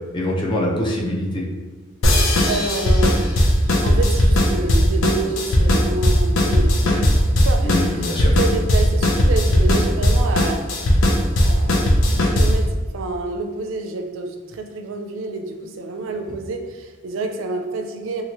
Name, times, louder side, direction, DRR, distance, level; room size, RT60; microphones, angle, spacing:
voice 1, 0.1-1.4 7.6-8.4, left 1 dB, 25° left, -3 dB, 0.5 m, -23 dB
sound 1, 2.0-12.7, equal, 85° left, 0.5 m, -17 dB
voice 2, 2.1-8.1 8.4-10.6 11.4-18.2, right 3 dB, 70° right, 4 dB, 0.4 m, -29 dB
2.8 x 2.4 x 2.9 m, 1.3 s
head